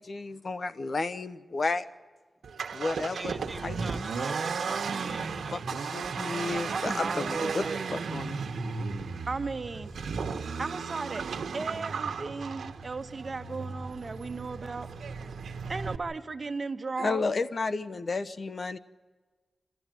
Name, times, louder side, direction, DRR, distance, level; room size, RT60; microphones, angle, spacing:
voice 1, 0.0-1.8 2.7-3.3 3.6-3.8 5.5-7.6 7.9-8.4 17.0-18.8, left 3 dB, 55° left, 13 dB, 0.9 m, -32 dB
Accelerating revving vroom, 2.4-16.0, right 5 dB, 90° right, 1.4 m, -35 dB
voice 2, 3.1-5.6, right 1 dB, 20° right, 13 dB, 0.6 m, -42 dB
voice 3, 6.7-7.8 9.3-9.9 10.6-11.2 11.5-14.9 15.7-17.3, right 4 dB, 50° right, 9 dB, 1.3 m, -35 dB
27.5 x 13.5 x 9.1 m, 1.4 s
cardioid pair, 60°, 0 cm